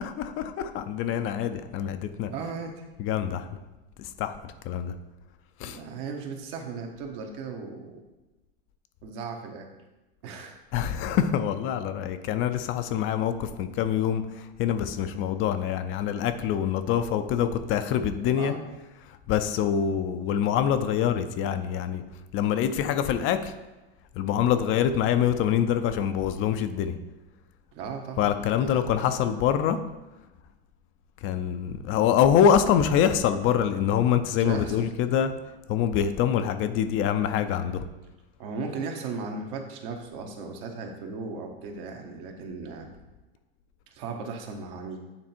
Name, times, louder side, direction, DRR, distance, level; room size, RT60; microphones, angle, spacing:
voice 1, 0.0-2.3 3.0-3.5 4.0-4.9 5.6-5.8 10.7-18.5 19.0-22.0 22.3-23.5 24.1-27.0 28.2-29.8 31.2-35.3 35.7-37.9, left 9 dB, 40° left, 9 dB, 0.5 m, -25 dB
voice 2, 2.3-2.8 5.6-8.0 9.0-9.7 10.2-10.6 18.4-18.7 27.7-28.8 34.4-34.9 38.4-42.9 43.9-45.0, right 4 dB, 60° right, 3 dB, 1.3 m, -36 dB
8.7 x 3.4 x 4.4 m, 1.1 s
hypercardioid pair, 110°, 31 cm